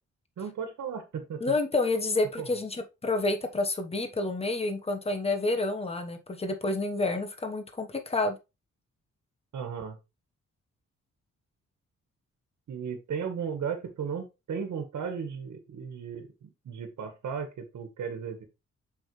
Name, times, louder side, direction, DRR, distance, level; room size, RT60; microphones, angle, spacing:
voice 1, 0.4-1.5 2.4-2.6 9.5-10.0 12.7-18.4, right 6 dB, 75° right, 1.6 m, -35 dB
voice 2, 1.4-8.4, left 2 dB, 20° left, 1.2 m, -29 dB
6.9 x 5.7 x 3.2 m
cardioid pair, 115°, 30 cm